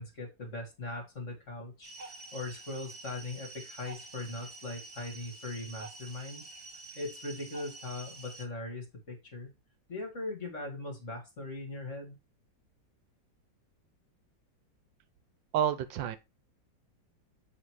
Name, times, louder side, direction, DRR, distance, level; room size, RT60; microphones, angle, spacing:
voice 1, 0.0-6.4 6.9-9.5 9.9-12.2, left 2 dB, 40° left, 2.5 m, -40 dB
sound 1, 1.8-8.5, right 2 dB, 35° right, 0.8 m, -48 dB
voice 2, 15.5-16.2, right 10 dB, 80° right, 1.5 m, -29 dB
7.9 x 4.2 x 4.6 m
omnidirectional pair, 2.0 m